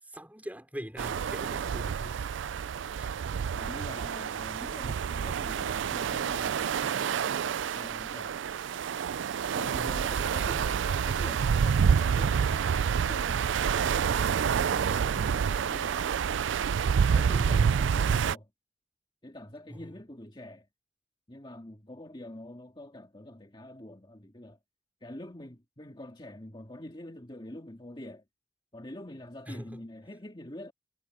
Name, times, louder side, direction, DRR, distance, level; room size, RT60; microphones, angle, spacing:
voice 1, 0.0-2.3 2.9-3.1 9.6-9.9 19.7-19.9 29.5-29.9, equal, 10° right, 5.0 m, -42 dB
sound 1, 1.0-18.3, right 7 dB, 75° right, 0.4 m, -28 dB
voice 2, 3.5-7.3 7.7-8.4 9.5-13.4 13.7-16.0 17.1-18.5 19.2-20.7 21.3-24.6 25.0-28.2 28.7-30.7, left 1 dB, 25° left, 2.1 m, -45 dB
head